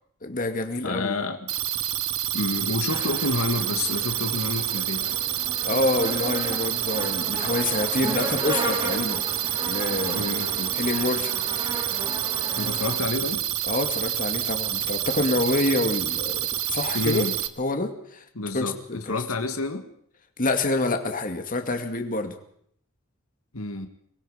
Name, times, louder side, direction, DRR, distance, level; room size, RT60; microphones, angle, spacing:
voice 1, 0.2-1.2 5.6-9.2 9.6-10.3 10.8-11.4 13.7-16.4 16.7-17.2 17.6-18.2 18.5-19.2 20.4-22.4, left 2 dB, 40° left, 5 dB, 2.2 m, -27 dB
voice 2, 0.8-1.5 2.3-5.2 10.1-10.7 12.6-13.4 16.9-17.3 18.4-19.9 23.5-23.9, left 3 dB, 90° left, 7 dB, 1.9 m, -29 dB
sound 1, 1.5-17.5, right 12 dB, 85° right, 1.4 m, -28 dB
sound 2, 2.9-13.0, right 1 dB, 25° right, 4.5 m, -35 dB
25.0 x 21.5 x 5.1 m, 0.67 s
head